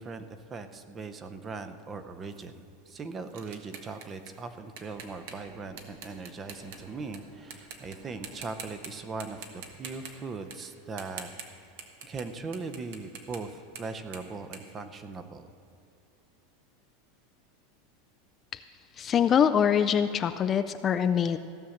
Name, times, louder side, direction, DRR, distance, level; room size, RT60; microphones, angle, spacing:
voice 1, 0.0-11.3 12.0-13.5 13.8-15.5, right 4 dB, 20° right, 9 dB, 0.6 m, -39 dB
sound 1, 2.3-7.2 7.5-8.0 8.2-8.9 9.2-15.5, right 6 dB, 70° right, 1.4 m, -46 dB
sound 2, 4.9-10.2, right 1 dB, 50° right, 3.3 m, -55 dB
voice 2, 19.0-21.4, left 8 dB, 25° left, 10 dB, 0.3 m, -24 dB
16.0 x 6.3 x 7.2 m, 2.5 s
supercardioid pair, 150°, 0 cm